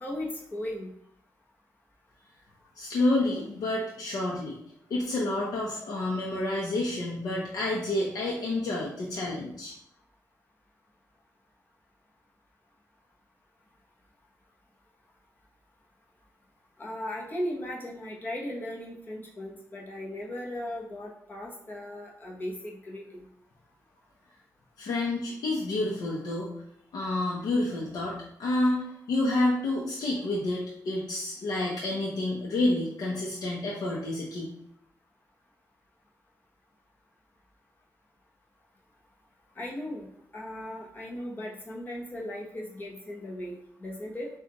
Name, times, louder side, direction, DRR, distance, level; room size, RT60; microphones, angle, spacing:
voice 1, 0.0-0.9 16.8-23.2 39.6-40.1 40.3-44.3, left 1 dB, 30° left, -3 dB, 1.0 m, -37 dB
voice 2, 2.8-4.6 4.9-9.7 24.8-26.5 26.9-34.5, left 2 dB, 75° left, -3 dB, 0.8 m, -29 dB
6.3 x 2.4 x 3.0 m, 0.72 s
wide cardioid pair, 135°, 6 cm